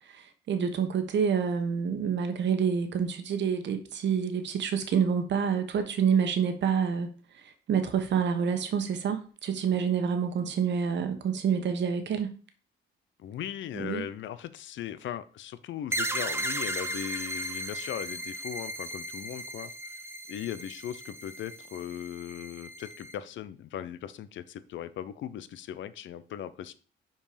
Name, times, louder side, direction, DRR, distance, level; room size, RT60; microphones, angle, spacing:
voice 1, 0.0-7.1 7.3-12.3 13.7-14.0, right 7 dB, 65° right, 1.3 m, -28 dB
voice 2, 13.2-19.7 20.3-26.7, left 10 dB, 70° left, 0.7 m, -38 dB
sound 1, 15.9-23.1, right 1 dB, 10° right, 0.8 m, -36 dB
5.8 x 4.6 x 5.0 m
cardioid pair, 90°, 20 cm